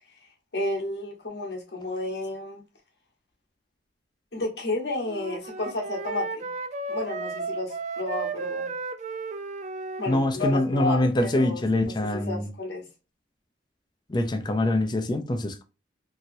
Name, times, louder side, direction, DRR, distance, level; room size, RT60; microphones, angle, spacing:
voice 1, 0.5-2.6 4.3-6.5 6.9-8.7 10.0-12.8, left 2 dB, 65° left, 1.0 m, -32 dB
Wind instrument woodwind instrument, 5.1-10.3, right 4 dB, 40° right, 0.3 m, -34 dB
voice 2, 10.1-12.5 14.1-15.6, left 1 dB, 25° left, 0.4 m, -24 dB
2.9 x 2.7 x 2.5 m
head